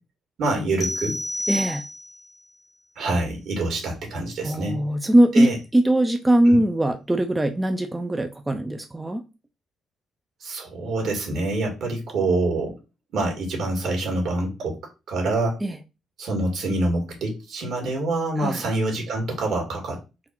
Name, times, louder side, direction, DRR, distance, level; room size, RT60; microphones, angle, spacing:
voice 1, 0.4-1.2 3.0-4.8 5.3-5.6 6.5-6.6 10.4-12.7 13.1-14.8 15.1-15.6 16.2-20.0, right 2 dB, 70° right, 1 dB, 2.0 m, -26 dB
sound 1, 0.8-2.3, left 1 dB, 20° left, 0.8 m, -30 dB
voice 2, 1.5-1.8 4.4-9.2 15.6-15.8 18.4-18.6, right 1 dB, 10° right, 5 dB, 0.5 m, -21 dB
4.0 x 2.4 x 4.5 m, 0.29 s
cardioid pair, 90°, 0 cm